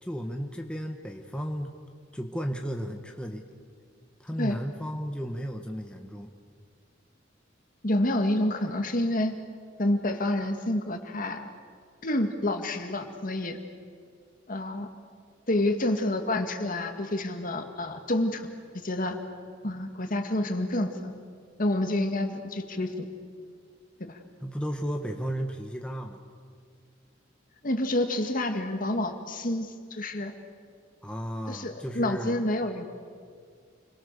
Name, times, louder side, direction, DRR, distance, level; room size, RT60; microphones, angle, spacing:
voice 1, 0.0-1.8 2.1-3.4 4.2-6.3 24.4-26.2 31.0-32.4, equal, 5° left, 3 dB, 1.3 m, -34 dB
voice 2, 7.8-9.4 9.8-11.5 12.0-13.6 14.5-14.9 15.5-18.4 18.7-19.2 19.6-21.1 21.6-23.1 24.0-24.2 27.6-30.3 31.5-32.8, left 1 dB, 45° left, 6 dB, 2.0 m, -28 dB
29.0 x 23.0 x 6.9 m, 2.1 s
head